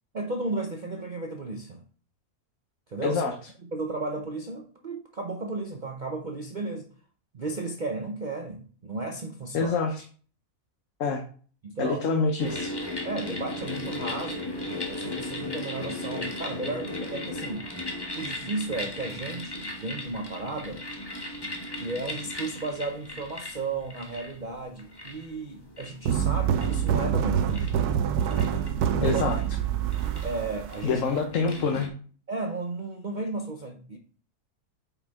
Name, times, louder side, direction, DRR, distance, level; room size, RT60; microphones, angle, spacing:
voice 1, 0.1-1.8 2.9-3.2 3.7-6.9 7.3-9.7 11.6-12.0 13.0-17.7 18.2-20.8 21.8-27.9 28.9-29.3 30.2-31.0 32.3-34.0, right 3 dB, 40° right, 0.7 m, -34 dB
voice 2, 3.0-3.3 9.5-10.0 11.0-11.2 11.8-12.8 29.0-29.4 30.8-31.9, left 4 dB, 60° left, 1.2 m, -26 dB
sound 1, 12.4-31.9, left 1 dB, 15° left, 1.2 m, -37 dB
sound 2, 26.1-31.2, right 8 dB, 90° right, 1.2 m, -26 dB
8.6 x 5.6 x 3.6 m
omnidirectional pair, 1.6 m